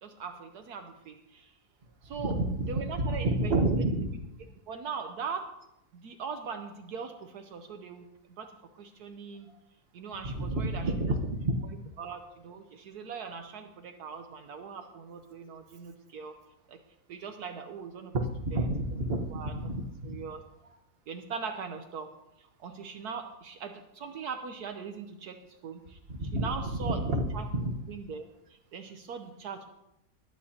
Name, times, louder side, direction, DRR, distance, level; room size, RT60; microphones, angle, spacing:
voice 1, 0.0-1.5 2.0-2.3 2.7-3.5 3.9-4.0 4.7-5.5 5.9-8.1 8.4-8.5 8.8-9.5 9.9-10.9 12.0-16.3 16.7-16.8 17.1-18.1 18.5-18.6 19.3-19.5 20.0-20.4 21.1-22.1 22.4-25.4 25.6-26.0 26.3-27.0 27.3-27.4 27.9-29.7, right 5 dB, 70° right, 5 dB, 1.3 m, -40 dB
voice 2, 2.1-4.1 10.4-11.6 18.3-20.2 26.1-26.5 27.0-27.2 27.5-27.7, right 2 dB, 40° right, 3 dB, 1.4 m, -29 dB
20.5 x 9.8 x 2.8 m, 0.86 s
omnidirectional pair, 1.8 m